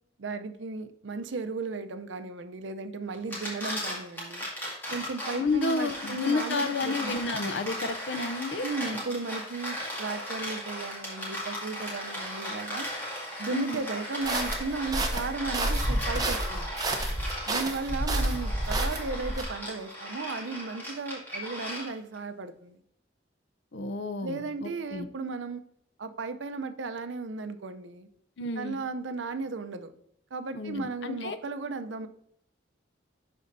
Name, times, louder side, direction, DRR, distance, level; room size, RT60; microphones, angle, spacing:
voice 1, 0.2-4.5 4.9-7.1 8.6-12.9 13.4-16.7 17.5-22.8 24.2-25.6 26.0-28.1 28.6-29.9 30.3-32.1, right 4 dB, 85° right, 10 dB, 0.6 m, -35 dB
sound 1, 3.1-22.2, equal, 10° left, 2.0 m, -37 dB
voice 2, 5.3-8.7 8.9-9.0 13.5-13.8 23.7-25.1 28.4-28.8 30.5-31.4, left 3 dB, 70° left, 10 dB, 0.6 m, -31 dB
sound 2, 14.2-19.4, right 1 dB, 20° right, 0.8 m, -30 dB
11.5 x 4.3 x 2.6 m, 0.71 s
head